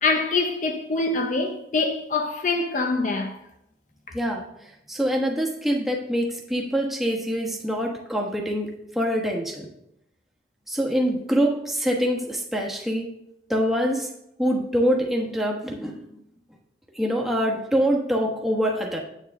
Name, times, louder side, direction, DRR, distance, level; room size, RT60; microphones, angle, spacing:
voice 1, 0.0-3.4 4.1-4.2, left 3 dB, 45° left, 0.6 m, -24 dB
voice 2, 4.1-4.4 4.9-9.7 10.7-13.1 13.5-14.1 14.4-16.0 16.9-19.0, equal, ahead, 1.1 m, -25 dB
9.3 x 8.3 x 3.6 m
head